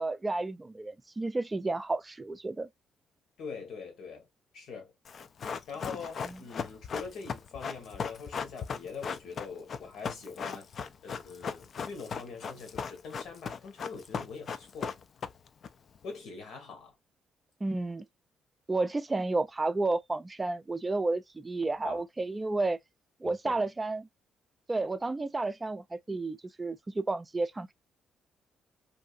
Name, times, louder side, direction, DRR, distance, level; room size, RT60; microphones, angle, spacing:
voice 1, 0.0-2.7 6.2-6.4 17.6-18.1 18.7-22.8 23.2-24.1 24.7-27.7, right 2 dB, 20° right, 0.4 m, -31 dB
voice 2, 3.4-4.3 4.5-4.9 5.7-10.7 11.0-15.0 16.0-16.9 21.8-22.0 23.2-23.6, left 5 dB, 75° left, 1.2 m, -43 dB
Run, 5.0-15.7 15.9-16.0, left 6 dB, 55° left, 0.4 m, -37 dB
2.7 x 2.6 x 2.4 m
cardioid pair, 90°, 0 cm